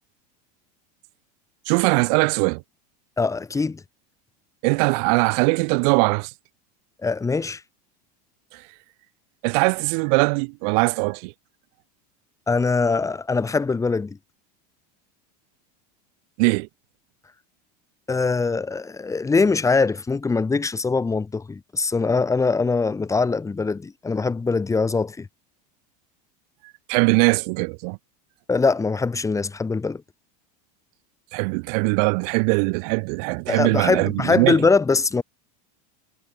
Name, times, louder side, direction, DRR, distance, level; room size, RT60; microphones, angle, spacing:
voice 1, 1.7-2.6 4.6-6.3 8.5-8.6 9.4-11.3 16.4-16.7 26.9-28.0 31.3-34.6, right 37 dB, 65° right, 4.7 m, -21 dB
voice 2, 3.2-3.8 7.0-7.6 12.5-14.2 18.1-25.3 28.5-30.0 33.5-35.2, left 4 dB, 15° left, 7.1 m, -22 dB
supercardioid pair, 120°, 21 cm